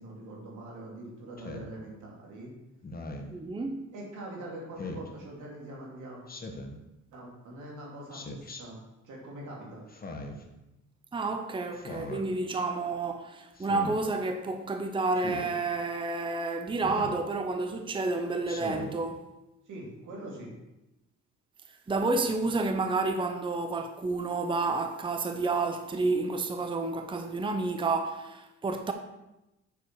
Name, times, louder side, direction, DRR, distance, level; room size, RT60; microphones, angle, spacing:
voice 1, 0.0-2.5 3.9-6.2 7.1-8.8 9.0-9.8 19.7-20.5, right 1 dB, 80° right, 2.8 m, -43 dB
Speech synthesizer, 1.4-1.7 2.8-3.3 4.8-5.1 6.3-6.8 8.1-8.6 9.9-10.4 11.7-12.2 13.6-14.0 15.2-15.5 16.8-17.2 18.4-19.0, left 2 dB, 30° left, 1.2 m, -39 dB
voice 2, 3.3-3.9 11.1-19.2 21.9-28.9, right 3 dB, 15° right, 0.7 m, -30 dB
7.1 x 6.6 x 4.7 m
cardioid pair, 90°, 30 cm